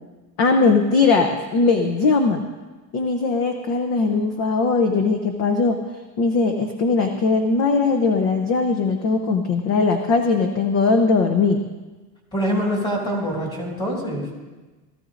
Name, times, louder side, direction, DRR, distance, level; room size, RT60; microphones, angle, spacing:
voice 1, 0.4-2.4 2.9-5.8 6.2-11.7, left 4 dB, 30° left, 6 dB, 0.7 m, -19 dB
voice 2, 12.3-14.3, equal, 10° left, 0 dB, 2.3 m, -24 dB
18.5 x 13.5 x 2.5 m, 1.2 s
supercardioid pair, 155°, 48 cm